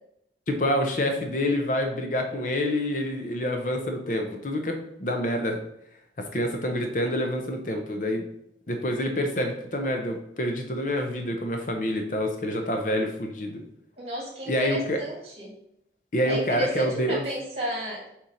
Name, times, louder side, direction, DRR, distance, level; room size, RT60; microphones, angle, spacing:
voice 1, 0.5-5.6 6.2-8.2 8.7-13.6 14.5-15.0 16.1-17.2, equal, 45° left, 4 dB, 0.7 m, -27 dB
voice 2, 14.0-15.5 16.3-18.1, equal, 35° right, -2 dB, 2.1 m, -33 dB
4.4 x 4.2 x 5.1 m, 0.76 s
head